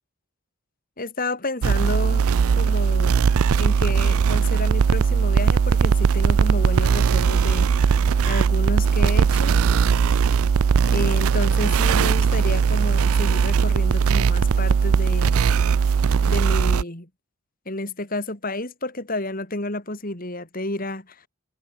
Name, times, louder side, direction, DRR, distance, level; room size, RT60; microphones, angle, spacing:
voice 1, 1.0-2.3 2.6-3.2 3.6-7.9 8.2-9.6 10.9-15.4 16.3-17.1 17.6-21.2, left 2 dB, 40° left, 3.3 m, -30 dB
sound 1, 1.6-16.8, right 6 dB, 70° right, 0.4 m, -19 dB
head